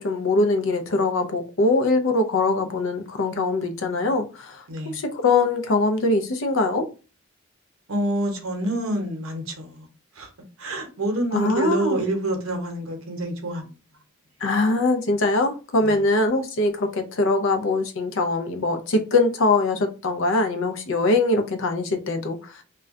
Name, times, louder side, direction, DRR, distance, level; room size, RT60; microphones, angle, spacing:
voice 1, 0.0-4.6 4.9-6.9 11.3-12.0 14.4-22.5, left 2 dB, 65° left, 0.5 m, -22 dB
voice 2, 7.9-9.9 10.2-10.3 10.6-13.7 15.8-16.0, right 1 dB, 70° right, 0.8 m, -27 dB
2.3 x 2.2 x 3.5 m
head